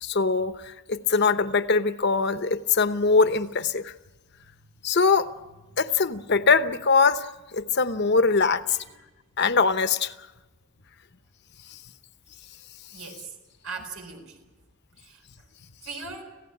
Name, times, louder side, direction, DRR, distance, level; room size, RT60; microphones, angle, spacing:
voice 1, 0.0-3.9 4.8-5.3 5.8-8.8 9.4-10.1 11.7-11.8, left 4 dB, 50° left, 11 dB, 0.9 m, -22 dB
voice 2, 12.9-13.4 13.6-14.4 15.0-15.2 15.8-16.2, right 4 dB, 90° right, 4 dB, 4.4 m, -39 dB
26.5 x 16.0 x 8.7 m, 1.1 s
head